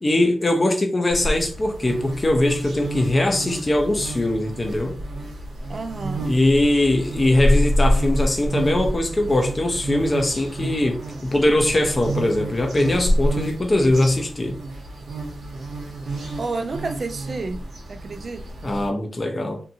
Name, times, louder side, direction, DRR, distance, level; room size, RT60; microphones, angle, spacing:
voice 1, 0.0-5.0 6.2-14.6 18.6-19.6, left 1 dB, 35° left, 0.5 m, -21 dB
sound 1, 1.1-18.9, equal, 85° right, 0.9 m, -28 dB
voice 2, 5.7-6.3 16.3-18.5, right 3 dB, 55° right, 0.4 m, -31 dB
2.7 x 2.6 x 2.5 m
cardioid pair, 55°, 0 cm